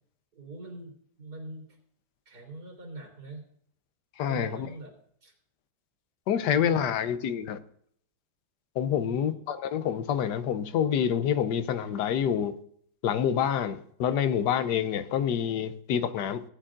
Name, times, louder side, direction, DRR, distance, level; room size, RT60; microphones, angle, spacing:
voice 1, 0.3-0.9 1.2-1.7 2.3-3.4 4.3-4.9 5.2-5.3 6.4-7.0 9.0-9.4, right 2 dB, 75° right, -1 dB, 3.6 m, -42 dB
voice 2, 4.2-4.7 6.3-7.6 8.8-12.5 13.0-16.4, left 8 dB, 90° left, 12 dB, 1.3 m, -27 dB
17.5 x 9.9 x 2.5 m, 0.64 s
omnidirectional pair, 1.7 m